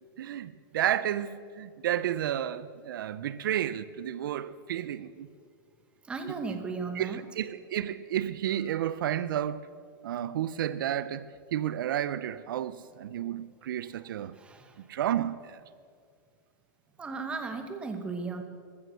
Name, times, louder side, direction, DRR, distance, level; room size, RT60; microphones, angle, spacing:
voice 1, 0.2-5.3 6.5-6.6 6.9-9.7 10.0-11.3 11.5-14.4 14.8-15.6, right 11 dB, 65° right, 0.5 m, -31 dB
voice 2, 6.1-7.2 14.3-14.8 17.0-18.4, right 4 dB, 10° right, 0.9 m, -36 dB
14.5 x 12.5 x 6.3 m
supercardioid pair, 165°, 12 cm